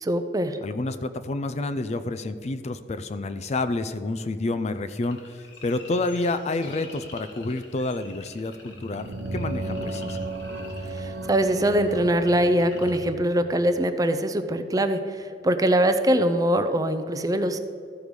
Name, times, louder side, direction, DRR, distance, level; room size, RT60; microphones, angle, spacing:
voice 1, 0.0-0.6 10.9-17.6, right 1 dB, 20° right, 9 dB, 0.5 m, -23 dB
voice 2, 0.6-10.2, left 2 dB, 40° left, 11 dB, 0.4 m, -29 dB
sound 1, 5.0-13.0, left 3 dB, 90° left, 1.6 m, -48 dB
sound 2, 8.6-13.3, right 1 dB, 90° right, 0.8 m, -34 dB
13.5 x 4.8 x 5.2 m, 2.4 s
head